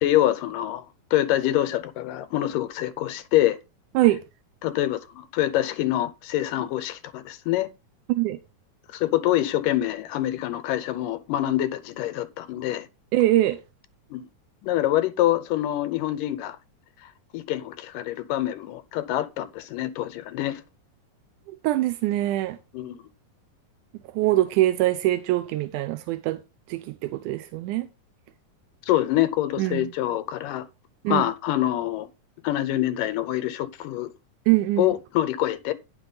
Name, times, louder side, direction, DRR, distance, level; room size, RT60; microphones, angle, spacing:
voice 1, 0.0-0.8 1.1-3.6 4.6-7.7 8.9-12.9 14.1-14.3 14.6-16.6 17.3-20.6 22.7-23.0 28.9-30.7 31.1-32.1 32.4-34.1 34.8-35.7, left 14 dB, 80° left, 2.4 m, -25 dB
voice 2, 13.1-13.6 21.5-22.6 24.1-26.4 26.7-27.9 29.6-29.9 31.0-31.2 34.5-34.9, right 15 dB, 80° right, 1.9 m, -23 dB
10.0 x 6.0 x 4.0 m
omnidirectional pair, 3.9 m